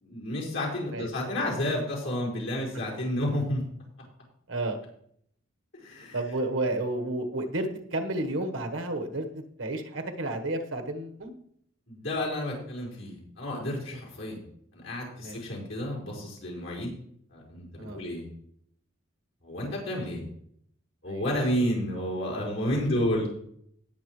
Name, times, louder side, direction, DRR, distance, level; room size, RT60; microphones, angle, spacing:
voice 1, 0.0-3.6 5.8-6.2 11.9-14.4 14.7-16.9 17.3-18.2 19.4-20.3 21.0-23.3, left 1 dB, 75° left, -4 dB, 5.2 m, -31 dB
voice 2, 6.1-9.3 9.6-11.3 13.9-14.0 15.2-15.4 17.8-18.0 21.1-21.2, right 2 dB, 70° right, 4 dB, 1.4 m, -31 dB
18.5 x 7.3 x 3.3 m, 0.68 s
head